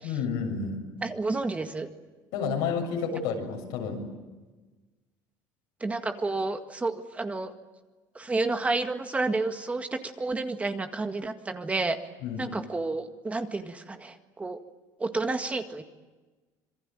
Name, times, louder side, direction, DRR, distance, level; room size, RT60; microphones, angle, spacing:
voice 1, 0.0-0.8 2.3-4.0 12.2-12.5, left 6 dB, 85° left, 2 dB, 7.0 m, -30 dB
voice 2, 1.0-1.9 5.8-7.5 8.2-12.0 12.4-14.6 15.0-15.8, right 3 dB, 15° right, 6 dB, 1.9 m, -30 dB
26.5 x 23.0 x 9.1 m, 1.2 s
cardioid pair, 115°, 8 cm